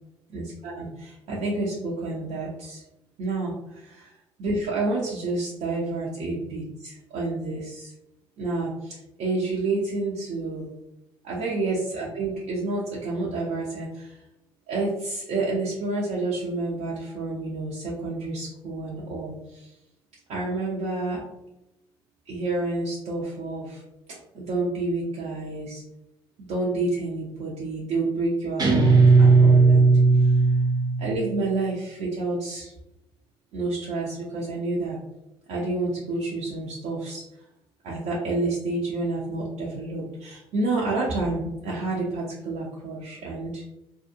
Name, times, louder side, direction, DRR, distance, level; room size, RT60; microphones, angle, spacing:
voice 1, 0.3-2.8 3.2-4.1 4.4-7.9 8.4-10.7 11.2-14.2 14.7-19.7 20.3-21.2 22.3-23.8 24.3-25.8 26.5-30.4 31.0-32.7 33.5-35.0 35.5-37.2 37.8-43.6, right 2 dB, 60° right, -6 dB, 0.6 m, -29 dB
Guitar, 28.6-31.2, right 3 dB, 30° right, 0.7 m, -16 dB
2.6 x 2.0 x 2.6 m, 0.87 s
hypercardioid pair, 55°, 13 cm